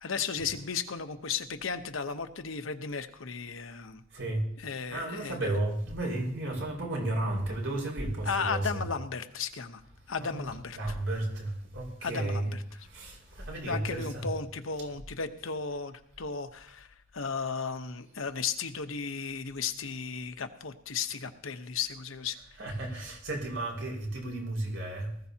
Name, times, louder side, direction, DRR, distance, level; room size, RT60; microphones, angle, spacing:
voice 1, 0.0-4.0 4.6-5.4 8.2-9.8 10.1-10.8 12.0-12.6 13.7-16.9 17.1-22.4, left 5 dB, 80° left, 8 dB, 1.0 m, -35 dB
voice 2, 4.1-4.4 4.9-8.8 10.2-12.5 12.8-14.3 22.6-25.1, right 1 dB, 70° right, -2 dB, 5.5 m, -33 dB
19.5 x 14.5 x 2.9 m, 0.67 s
head